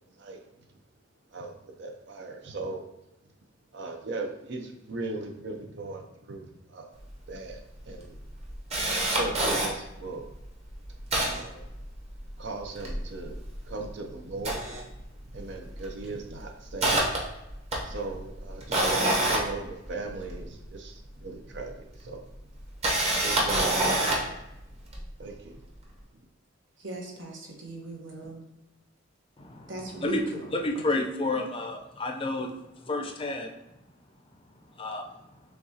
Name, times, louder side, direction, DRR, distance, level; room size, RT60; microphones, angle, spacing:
voice 1, 1.3-2.9 3.7-6.9 7.3-8.2 9.1-10.3 11.4-11.6 12.4-14.6 15.3-17.0 17.8-22.2 23.2-24.4 25.2-25.6, right 3 dB, 65° right, 3 dB, 0.6 m, -38 dB
Camera, 7.1-7.2 7.5-7.6 8.0-9.7 10.3-10.4 10.7-12.3 12.6-13.9 14.3-15.4 15.7-16.0 16.4-20.4 21.5-21.6 22.6-24.4 24.9-25.1, right 1 dB, 35° right, 0.9 m, -27 dB
voice 2, 26.8-28.4 29.7-30.8, right 3 dB, 80° right, 0 dB, 1.1 m, -39 dB
voice 3, 29.4-29.7 30.0-30.2 30.5-32.5 32.8-33.5 34.8-35.1, left 2 dB, 30° left, 2 dB, 0.5 m, -30 dB
6.5 x 2.4 x 2.7 m, 0.90 s
head